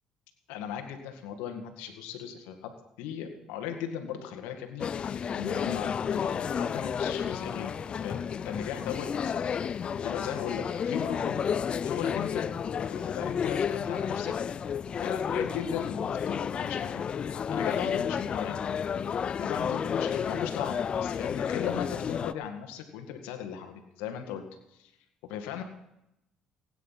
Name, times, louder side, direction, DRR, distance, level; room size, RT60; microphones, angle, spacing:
voice 1, 0.5-7.7 8.0-9.5 9.9-11.5 11.8-14.3 15.0-17.0 17.5-18.7 19.4-24.4 24.8-24.9 25.2-25.6, left 9 dB, 90° left, 5 dB, 1.9 m, -37 dB
sound 1, 4.8-22.3, left 7 dB, 45° left, 0.4 m, -31 dB
16.5 x 9.4 x 5.8 m, 0.83 s
supercardioid pair, 80°, 2 cm